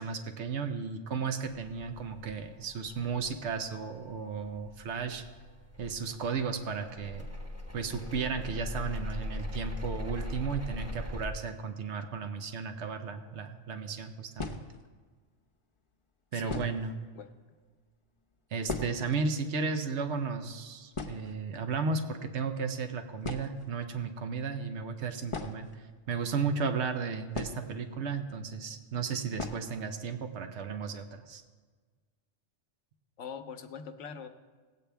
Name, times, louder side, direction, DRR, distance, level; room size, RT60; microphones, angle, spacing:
voice 1, 0.0-5.2 5.8-7.3 7.7-14.6 16.3-16.9 18.5-31.4, right 5 dB, 70° right, 6 dB, 1.1 m, -34 dB
sound 1, 1.5-11.3, left 1 dB, 15° right, 1.2 m, -41 dB
sound 2, 13.3-13.5 14.3-15.0 15.9-16.0 16.4-17.0 17.3-17.4 17.6-17.8 18.2-19.2 19.5-19.6 19.9-20.2 20.5-20.6 20.9-21.8 22.8-22.9 23.2-23.8 25.2-26.3 27.3-28.1 28.4-28.5 29.3-29.8 30.1-30.2 30.6-30.7 31.1-31.5, left 3 dB, 30° left, 0.7 m, -39 dB
voice 2, 33.2-34.3, left 6 dB, 90° left, 8 dB, 1.1 m, -43 dB
18.0 x 8.5 x 3.4 m, 1.4 s
omnidirectional pair, 1.2 m